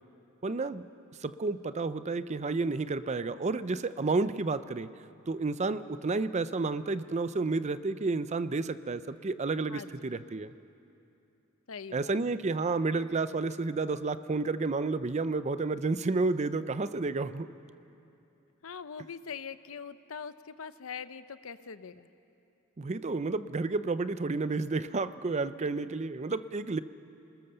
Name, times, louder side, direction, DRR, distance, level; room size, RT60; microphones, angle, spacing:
voice 1, 0.4-0.9 1.2-4.9 5.3-10.5 11.9-17.5 22.8-26.8, right 3 dB, 35° right, 14 dB, 0.5 m, -31 dB
voice 2, 11.7-12.1 18.6-22.1, left 6 dB, 75° left, 13 dB, 0.7 m, -42 dB
27.0 x 20.0 x 6.8 m, 2.7 s
head